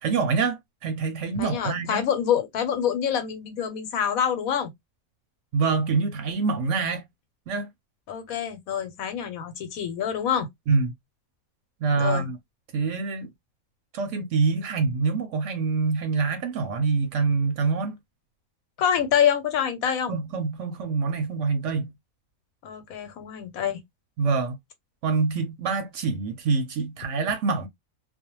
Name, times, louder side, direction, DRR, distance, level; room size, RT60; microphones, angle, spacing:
voice 1, 0.0-2.0 5.5-7.0 7.5-7.7 10.7-10.9 11.8-12.4 12.7-13.3 13.9-17.9 20.1-21.9 24.2-24.6 25.0-27.7, right 4 dB, 70° right, 0.8 m, -25 dB
voice 2, 1.3-4.7 8.1-10.5 12.0-12.3 18.8-20.2 22.6-23.8, left 8 dB, 85° left, 1.2 m, -26 dB
2.5 x 2.1 x 2.9 m
omnidirectional pair, 1.4 m